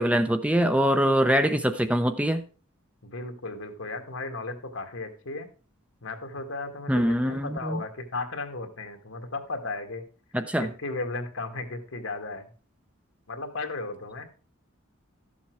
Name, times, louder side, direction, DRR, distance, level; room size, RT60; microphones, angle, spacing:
voice 1, 0.0-2.4 6.9-7.8 10.3-10.7, equal, 5° right, 9 dB, 0.6 m, -23 dB
voice 2, 3.0-5.5 6.0-10.0 10.6-12.5 13.3-14.3, left 3 dB, 75° left, 6 dB, 1.8 m, -35 dB
13.0 x 7.2 x 4.6 m, 0.37 s
head